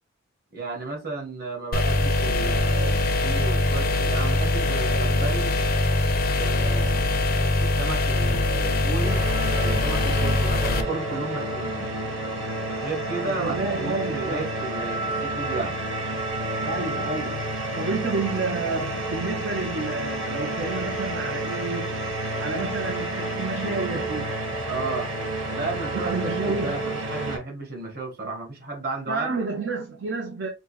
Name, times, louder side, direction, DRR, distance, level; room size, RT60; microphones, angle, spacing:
voice 1, 0.5-5.6 6.3-7.1 7.6-9.2 9.6-11.9 12.8-15.8 18.1-18.3 24.7-25.1 25.5-29.3, right 3 dB, 50° right, 1.6 m, -33 dB
sound 1, 1.7-10.8, left 2 dB, 50° left, 0.5 m, -23 dB
sound 2, 9.0-27.4, right 1 dB, 90° right, 1.8 m, -30 dB
voice 2, 13.3-14.5 16.6-22.0 22.4-24.4 25.9-26.8 29.1-30.5, right 3 dB, 65° right, 0.6 m, -30 dB
5.0 x 2.0 x 3.1 m
head